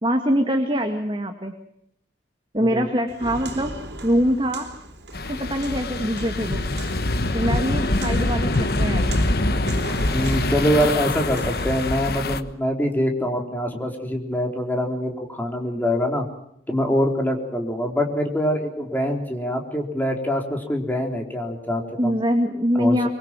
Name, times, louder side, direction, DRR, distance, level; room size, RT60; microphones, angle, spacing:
voice 1, 0.0-1.5 2.5-3.7 4.0-4.7 5.3-6.6 7.3-9.2 22.0-23.1, equal, 25° right, 4 dB, 1.9 m, -23 dB
Walk footsteps, 3.1-11.9, right 2 dB, 70° right, 4.3 m, -39 dB
sound 1, 5.1-12.4, left 2 dB, 55° left, 1.3 m, -24 dB
voice 2, 10.1-16.3 16.7-22.1 22.8-22.9, equal, 10° left, 2 dB, 3.9 m, -24 dB
24.0 x 23.5 x 7.5 m, 0.74 s
head